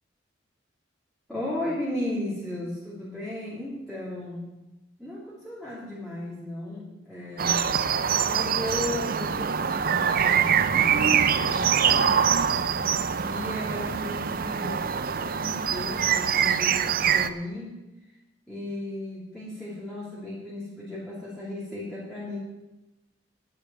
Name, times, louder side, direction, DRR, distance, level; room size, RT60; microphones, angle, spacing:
voice 1, 1.3-4.5 5.0-7.7 8.2-12.3 13.2-17.8 18.1-18.2 18.5-22.4, left 1 dB, ahead, -9 dB, 2.9 m, -35 dB
sound 1, 7.4-17.3, right 7 dB, 50° right, 0.5 m, -24 dB
10.5 x 6.8 x 9.2 m, 1.0 s
head